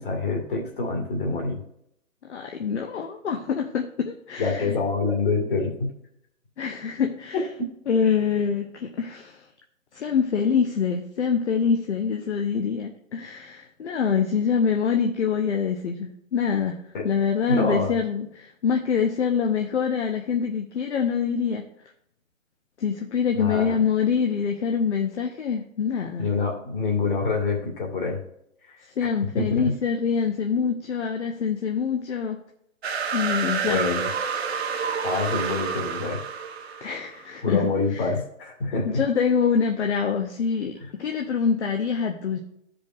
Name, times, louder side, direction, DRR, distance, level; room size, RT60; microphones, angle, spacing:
voice 1, 0.0-1.6 4.4-5.9 7.3-7.4 16.9-17.1 17.5-18.0 23.4-23.8 26.2-28.2 29.4-29.7 33.7-34.1 35.0-36.2 36.7-36.8 37.4-39.0 40.8-40.9, left 3 dB, 40° left, 0 dB, 2.0 m, -26 dB
voice 2, 2.3-4.8 6.6-7.4 7.9-9.4 9.9-21.7 22.8-26.3 29.0-32.4 33.1-33.8 34.5-35.0 36.8-37.6 37.9-38.0 38.8-42.4, left 6 dB, 55° left, 3 dB, 0.8 m, -25 dB
sound 1, 32.8-37.3, right 6 dB, 50° right, 0.7 m, -29 dB
13.0 x 5.2 x 2.5 m, 0.74 s
hypercardioid pair, 170°, 41 cm